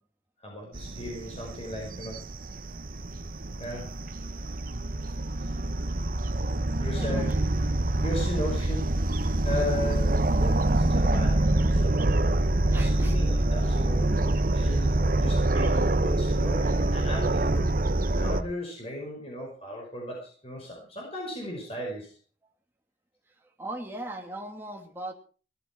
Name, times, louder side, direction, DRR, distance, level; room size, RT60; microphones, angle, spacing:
voice 1, 0.4-2.2 3.6-3.9 6.8-7.3 8.0-11.9 12.7-17.7 18.0-22.1, left 1 dB, 35° left, -1 dB, 5.5 m, -36 dB
sound 1, 0.7-18.4, right 1 dB, 50° right, 1.0 m, -26 dB
voice 2, 6.8-7.4 12.7-13.4 23.6-25.1, right 1 dB, 15° right, 2 dB, 2.7 m, -39 dB
18.5 x 13.0 x 4.6 m, 0.39 s
head